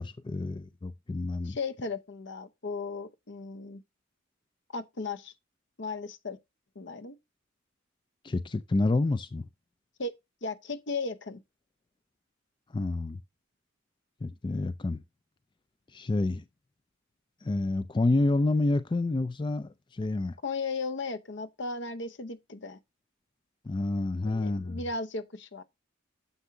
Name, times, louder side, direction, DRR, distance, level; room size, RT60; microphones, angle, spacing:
voice 1, 0.0-1.6 8.2-9.5 12.7-13.2 14.2-15.0 15.9-16.4 17.4-20.4 23.6-24.8, left 2 dB, 25° left, 0.4 m, -29 dB
voice 2, 1.5-3.8 4.7-5.3 5.8-6.4 6.8-7.2 10.0-10.1 10.4-11.4 20.4-22.8 24.3-25.6, left 3 dB, 60° left, 0.8 m, -36 dB
9.6 x 7.1 x 2.7 m
head